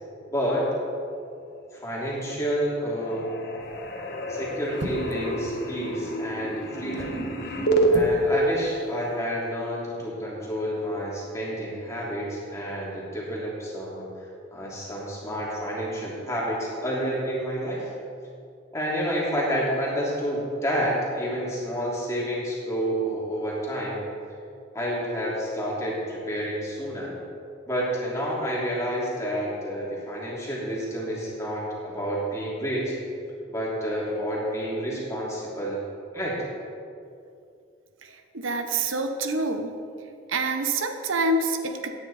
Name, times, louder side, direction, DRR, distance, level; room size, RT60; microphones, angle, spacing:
voice 1, 0.3-0.6 1.7-3.3 4.3-7.2 7.9-14.0 14.5-17.9 18.7-24.0 24.7-27.1 27.7-32.9 33.5-35.8 36.1-36.4, equal, 15° left, -5 dB, 3.0 m, -29 dB
sound 1, 2.0-2.5 2.8-7.9, right 2 dB, 55° left, 1.4 m, -29 dB
sound 2, 3.6-3.9 4.7-5.3 6.7-7.2 7.9-8.3 8.5-8.6, right 1 dB, 70° right, 1.4 m, -36 dB
voice 2, 38.0-39.7 40.3-41.9, right 2 dB, 85° right, 6 dB, 1.1 m, -27 dB
17.5 x 9.8 x 4.3 m, 2.5 s
head